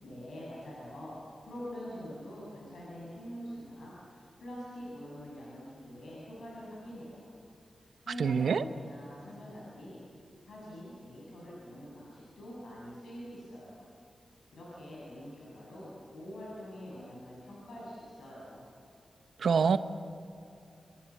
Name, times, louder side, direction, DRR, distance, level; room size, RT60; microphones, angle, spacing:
voice 1, 0.0-7.3 7.8-10.0 10.4-13.8 14.5-18.7, equal, 80° left, -6 dB, 7.9 m, -45 dB
voice 2, 8.2-8.6 19.4-19.8, right 6 dB, 80° right, 11 dB, 1.0 m, -25 dB
27.0 x 24.5 x 7.4 m, 2.7 s
cardioid pair, 55°, 0 cm